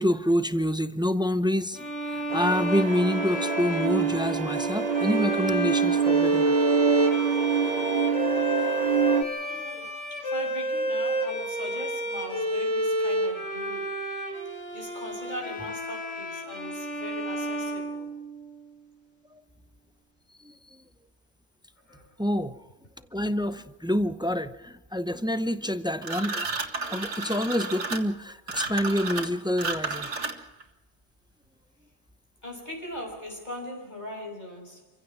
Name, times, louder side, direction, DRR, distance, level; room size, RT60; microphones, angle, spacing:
voice 1, 0.0-6.6 8.6-9.9 20.4-20.8 22.2-22.5 23.1-26.5 26.8-30.1, equal, 5° right, 11 dB, 0.6 m, -27 dB
sound 1, 1.7-18.6, equal, 70° left, 3.7 m, -30 dB
sound 2, 2.3-9.2, right 7 dB, 35° right, 0.9 m, -26 dB
voice 2, 9.4-13.9 14.7-18.1 21.8-22.1 32.4-34.9, left 1 dB, 35° left, 0 dB, 6.2 m, -40 dB
sound 3, 26.0-30.6, right 3 dB, 70° right, 2.2 m, -32 dB
27.0 x 16.0 x 6.1 m, 1.1 s
omnidirectional pair, 1.3 m